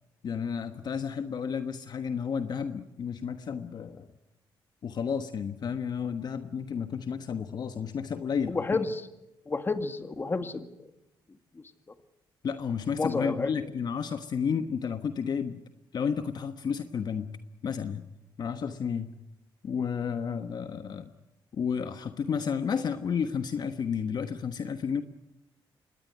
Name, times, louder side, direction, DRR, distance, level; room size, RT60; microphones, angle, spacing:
voice 1, 0.2-4.1 4.8-8.6 12.4-15.6 15.9-17.3 17.6-18.0 18.4-19.1 19.6-21.1 21.6-25.0, left 6 dB, 55° left, 8 dB, 1.3 m, -31 dB
voice 2, 8.5-9.1 9.5-10.7 11.5-11.6 13.0-13.5, left 3 dB, 25° left, 8 dB, 2.0 m, -30 dB
25.0 x 19.5 x 9.5 m, 0.94 s
cardioid pair, 105°, 9 cm